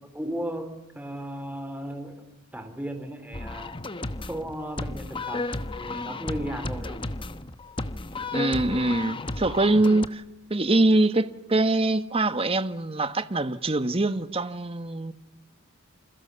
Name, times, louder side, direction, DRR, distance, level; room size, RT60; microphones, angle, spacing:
voice 1, 0.1-2.2 2.5-3.8 4.2-5.5 5.8-7.0, right 1 dB, 10° right, 3.8 m, -35 dB
sound 1, 3.3-10.1, left 2 dB, 25° left, 1.0 m, -33 dB
voice 2, 8.3-10.2 10.5-15.1, right 2 dB, 25° right, 1.3 m, -23 dB
29.0 x 27.5 x 7.0 m
head